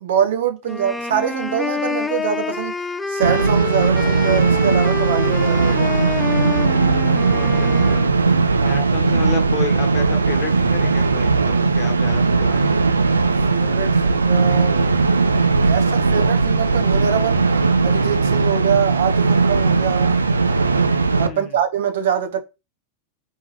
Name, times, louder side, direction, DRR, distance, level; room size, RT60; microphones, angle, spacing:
voice 1, 0.0-2.7 3.1-5.9 8.6-8.8 13.5-14.8 15.6-17.4 17.8-20.2 21.2-22.4, right 8 dB, 60° right, 0.7 m, -24 dB
sound 1, 0.6-8.1, left 4 dB, 10° left, 0.4 m, -27 dB
sound 2, 3.2-21.3, right 4 dB, 80° right, 0.3 m, -18 dB
voice 2, 7.2-8.0 8.6-12.8 21.2-21.6, left 4 dB, 40° left, 1.1 m, -31 dB
4.5 x 3.6 x 3.0 m
figure-of-eight pair, 90°, 0 cm